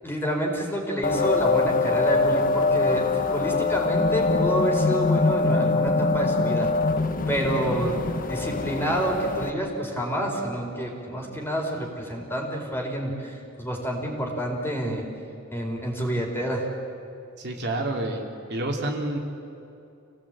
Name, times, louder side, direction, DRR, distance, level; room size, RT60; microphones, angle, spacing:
voice 1, 0.0-6.7 7.3-15.0 15.5-16.7, right 1 dB, 10° left, 0 dB, 4.2 m, -28 dB
sound 1, 1.0-9.5, left 3 dB, 40° left, 1.1 m, -23 dB
voice 2, 17.4-18.2 18.5-19.2, right 1 dB, 55° right, 0 dB, 3.3 m, -28 dB
28.0 x 18.0 x 8.9 m, 2.7 s
head